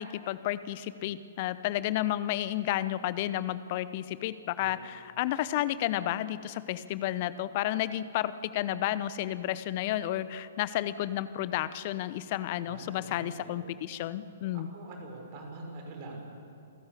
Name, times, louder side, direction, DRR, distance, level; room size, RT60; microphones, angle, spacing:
voice 1, 0.0-14.7, left 13 dB, 40° left, 15 dB, 0.9 m, -32 dB
voice 2, 12.7-13.6 14.5-16.3, right 2 dB, 40° right, 2 dB, 5.8 m, -44 dB
28.0 x 14.0 x 8.4 m, 2.7 s
figure-of-eight pair, 115°, 0 cm